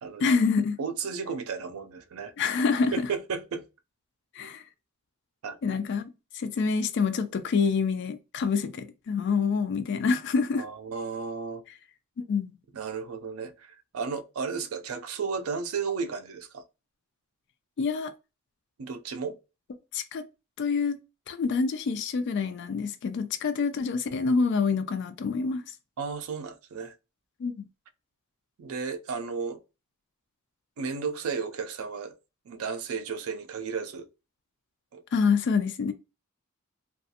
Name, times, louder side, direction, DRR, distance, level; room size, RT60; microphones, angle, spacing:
voice 1, 0.2-0.8 2.4-2.9 4.4-4.6 5.6-6.1 6.3-10.6 12.3-12.5 17.8-18.1 19.9-20.2 20.6-21.0 21.3-25.6 27.4-27.6 35.1-35.9, left 5 dB, 55° left, 0.3 m, -26 dB
voice 2, 0.8-2.3 2.9-3.7 5.4-5.8 10.6-11.6 12.7-16.6 18.8-19.4 26.0-26.9 28.6-29.6 30.8-32.1 32.5-34.1 34.9-35.0, right 5 dB, 85° right, 0.4 m, -34 dB
2.4 x 2.3 x 2.7 m
head